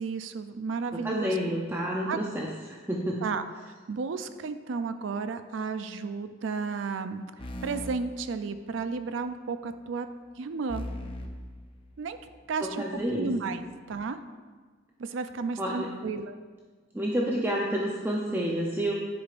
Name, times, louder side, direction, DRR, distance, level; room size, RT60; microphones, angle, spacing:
voice 1, 0.0-1.4 2.1-2.2 3.2-3.4 3.9-7.3 7.6-10.1 10.4-10.8 12.0-12.2 12.5-12.8 13.1-13.6 13.9-14.2 15.0-16.4, right 4 dB, 75° right, 10 dB, 0.4 m, -32 dB
voice 2, 0.9-3.2 12.6-13.3 15.6-15.9 16.9-18.9, equal, 10° right, -3 dB, 0.5 m, -29 dB
sound 1, 7.4-9.0 10.7-12.5, equal, 30° left, 0.6 m, -40 dB
10.0 x 5.2 x 2.5 m, 1.4 s
head